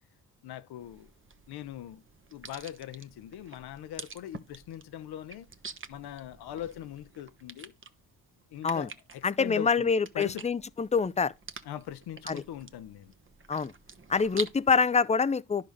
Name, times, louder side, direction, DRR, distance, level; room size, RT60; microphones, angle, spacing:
voice 1, 0.4-1.1 1.5-2.0 2.3-5.5 5.9-7.7 8.5-10.5 11.6-13.1, left 11 dB, 75° left, 0.9 m, -41 dB
sound 1, 0.8-14.8, right 4 dB, 30° right, 1.1 m, -47 dB
voice 2, 9.2-11.3 12.3-12.4 13.5-13.7 14.1-15.7, left 5 dB, 15° left, 0.5 m, -26 dB
10.5 x 3.8 x 6.5 m
supercardioid pair, 60°, 39 cm